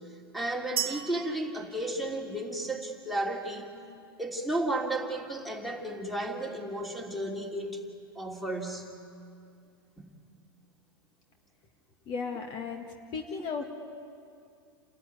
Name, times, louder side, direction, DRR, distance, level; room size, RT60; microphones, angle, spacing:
voice 1, 0.3-3.7 4.2-7.8 8.1-8.9 10.0-10.1, right 1 dB, ahead, 2 dB, 3.0 m, -33 dB
sound 1, 0.8-2.7, right 11 dB, 70° right, 1.3 m, -36 dB
voice 2, 12.1-12.8 13.1-13.7, left 5 dB, 40° left, 4 dB, 1.9 m, -35 dB
29.0 x 14.0 x 9.6 m, 2.4 s
hypercardioid pair, 100°, 13 cm